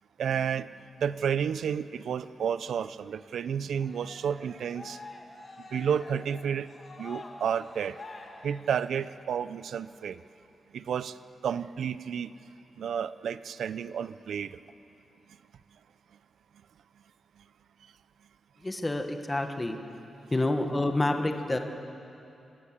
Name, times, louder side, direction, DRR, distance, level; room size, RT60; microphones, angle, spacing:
voice 1, 0.2-0.7 1.0-5.0 5.7-6.7 7.0-8.0 8.4-10.2 10.7-11.2 11.4-12.3 12.8-14.6, right 8 dB, 85° right, 15 dB, 0.6 m, -31 dB
Cheering, 3.7-9.2, left 3 dB, 35° left, 2.4 m, -47 dB
voice 2, 18.6-19.8 20.3-21.6, left 2 dB, 15° left, 5 dB, 1.3 m, -28 dB
26.0 x 18.5 x 7.4 m, 2.8 s
wide cardioid pair, 170°, 0 cm